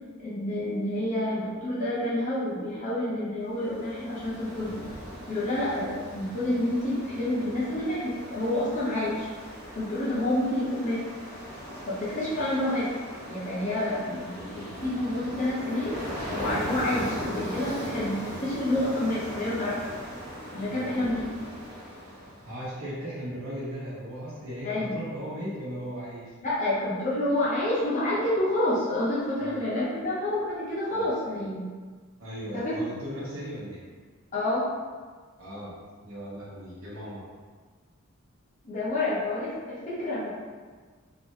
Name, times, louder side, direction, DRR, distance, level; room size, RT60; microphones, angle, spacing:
voice 1, 0.2-4.8 5.3-9.3 9.7-11.1 11.9-12.9 13.3-16.0 16.3-19.9 20.5-21.3 24.6-25.0 26.4-31.7 32.5-32.7 34.3-34.7 38.6-40.3, left 1 dB, 35° left, -8 dB, 0.7 m, -28 dB
Ocean, 3.5-22.6, equal, 90° right, 1.2 m, -39 dB
voice 2, 20.7-21.1 22.4-26.3 29.4-29.6 30.9-31.1 32.2-33.8 35.4-35.8 36.0-37.2, equal, 70° right, -9 dB, 1.0 m, -37 dB
3.3 x 2.9 x 2.6 m, 1.5 s
head